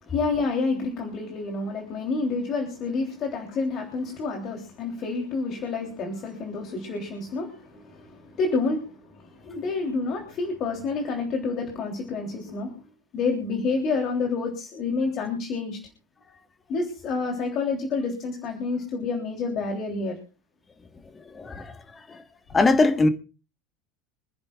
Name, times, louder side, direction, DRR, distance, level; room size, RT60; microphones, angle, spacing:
voice 1, 0.0-12.8 13.1-15.8 16.7-20.2, left 4 dB, 45° left, 3.4 m, -29 dB
voice 2, 21.3-21.7 22.5-23.1, left 3 dB, 20° left, 1.5 m, -20 dB
26.5 x 10.5 x 2.5 m
hypercardioid pair, 80°, 0 cm